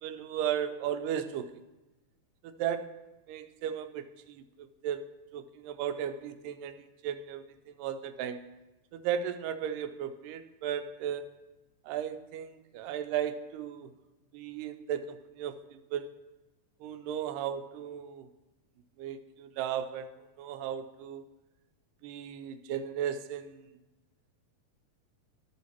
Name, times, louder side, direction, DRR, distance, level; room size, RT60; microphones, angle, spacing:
voice 1, 0.0-1.5 2.4-8.5 8.9-11.3 11.9-13.9 14.3-16.1 16.8-18.3 19.0-21.2 22.0-23.7, right 9 dB, 85° right, 10 dB, 2.1 m, -36 dB
13.5 x 5.6 x 3.0 m, 1.1 s
omnidirectional pair, 3.7 m